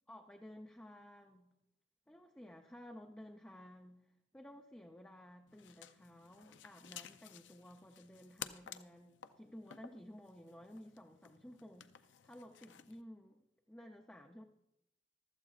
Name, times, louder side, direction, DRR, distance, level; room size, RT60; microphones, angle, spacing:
voice 1, 0.1-1.5 2.1-14.4, equal, 5° left, 2 dB, 0.5 m, -55 dB
sound 1, 5.5-13.0, left 9 dB, 75° left, 0.5 m, -54 dB
15.5 x 12.5 x 2.4 m, 0.86 s
head